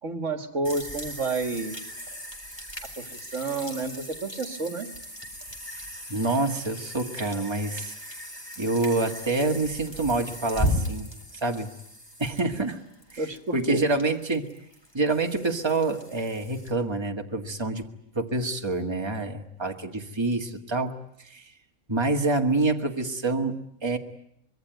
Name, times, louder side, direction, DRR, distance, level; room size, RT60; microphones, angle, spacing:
voice 1, 0.0-1.8 3.0-4.9 13.2-13.8, right 3 dB, 60° right, 8 dB, 2.0 m, -30 dB
sound 1, 0.6-16.7, equal, 15° left, 3.9 m, -36 dB
voice 2, 6.1-7.9 8.6-11.7 12.2-12.8 13.1-14.5 14.9-17.8 18.1-21.0 21.3-21.4 21.9-24.0, right 2 dB, 20° right, 3 dB, 1.9 m, -27 dB
25.0 x 22.5 x 9.3 m, 0.73 s
omnidirectional pair, 1.4 m